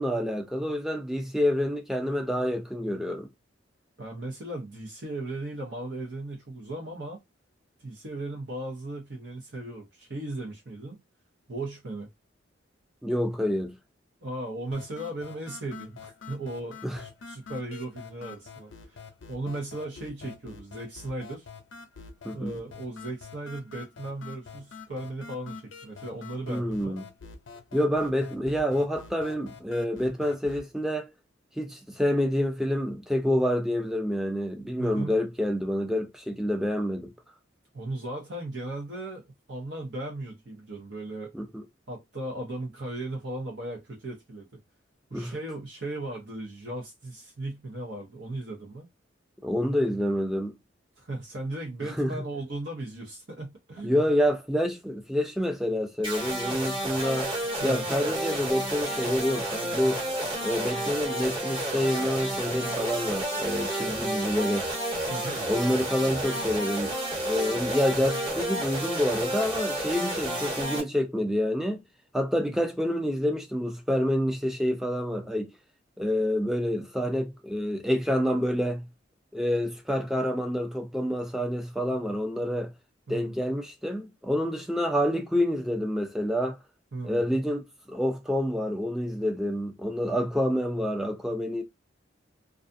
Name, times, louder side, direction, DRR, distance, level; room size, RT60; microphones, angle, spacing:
voice 1, 0.0-3.3 13.0-13.8 16.8-17.0 22.2-22.5 26.5-27.0 27.7-31.1 31.6-37.1 41.3-41.5 45.1-45.3 49.4-50.6 52.0-52.2 53.8-57.3 57.6-60.1 60.4-64.7 65.5-67.0 67.2-71.8 72.1-75.5 76.0-78.8 79.3-82.7 83.1-86.6 87.0-91.6, equal, ahead, 0.4 m, -27 dB
voice 2, 4.0-7.2 7.8-11.0 11.5-12.1 14.2-19.0 19.3-21.5 22.3-27.0 34.8-35.1 37.7-41.3 41.9-44.5 45.1-48.9 51.0-53.9 57.6-57.9 65.1-65.4 72.5-72.6 83.1-83.3 86.9-87.2, right 1 dB, 65° right, 0.8 m, -37 dB
sound 1, 14.7-30.7, left 5 dB, 85° left, 0.5 m, -46 dB
sound 2, 56.0-70.8, right 1 dB, 25° right, 1.1 m, -31 dB
2.4 x 2.4 x 2.5 m
head